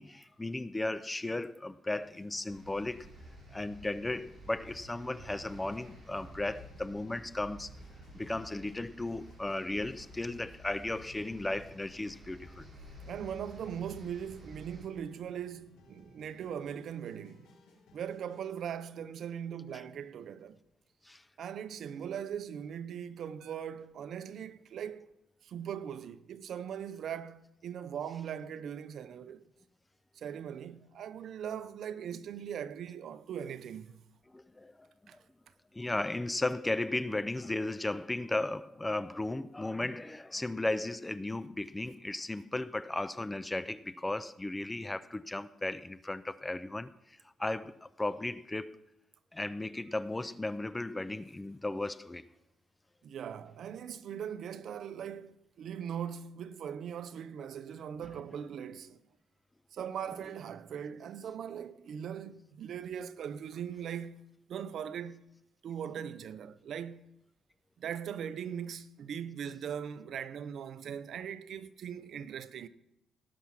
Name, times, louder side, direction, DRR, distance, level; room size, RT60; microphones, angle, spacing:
voice 1, 0.0-3.1 3.5-7.8 8.1-12.7 21.0-21.2 34.3-34.9 35.7-48.8 49.3-52.2, left 2 dB, 15° left, 0.4 m, -35 dB
sound 1, 1.9-18.5, left 3 dB, 90° left, 5.4 m, -62 dB
sound 2, 2.5-14.9, equal, 25° right, 5.4 m, -52 dB
voice 2, 13.0-17.5 17.9-20.6 21.4-25.1 25.4-29.5 30.2-34.0 35.1-35.2 53.0-59.0 59.7-64.2 64.5-65.2 65.6-67.1 67.8-72.7, right 8 dB, 65° right, 0.6 m, -40 dB
18.0 x 6.1 x 5.8 m
cardioid pair, 90°, 0 cm